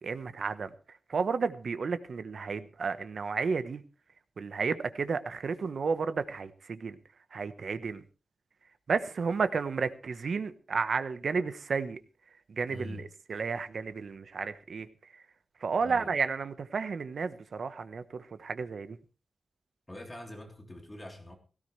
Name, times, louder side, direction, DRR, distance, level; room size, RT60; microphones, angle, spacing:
voice 1, 0.0-0.7 1.1-3.8 4.4-7.0 7.3-8.0 8.9-12.0 12.5-14.9 15.1-15.2 15.6-19.0, right 5 dB, 60° right, 11 dB, 1.2 m, -32 dB
voice 2, 12.7-13.1 15.8-16.1 19.9-21.3, left 1 dB, 15° left, 2 dB, 3.5 m, -44 dB
17.5 x 16.0 x 3.3 m, 0.33 s
wide cardioid pair, 150°, 0 cm